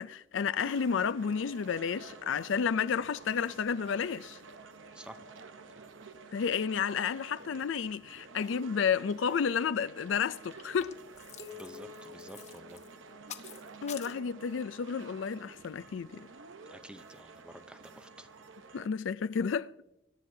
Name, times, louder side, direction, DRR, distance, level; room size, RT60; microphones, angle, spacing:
voice 1, 0.0-4.4 6.3-11.0 13.8-16.3 18.7-19.7, left 6 dB, 75° left, 0.4 m, -31 dB
sound 1, 0.6-18.9, right 4 dB, 80° right, 0.8 m, -51 dB
sound 2, 8.9-9.0 9.2-9.5 9.9-14.1, left 8 dB, 35° left, 0.9 m, -49 dB
sound 3, 11.4-13.8, left 7 dB, 55° left, 1.4 m, -51 dB
voice 2, 11.5-12.8 16.7-18.3, right 1 dB, 5° right, 0.6 m, -50 dB
25.5 x 11.5 x 2.7 m
head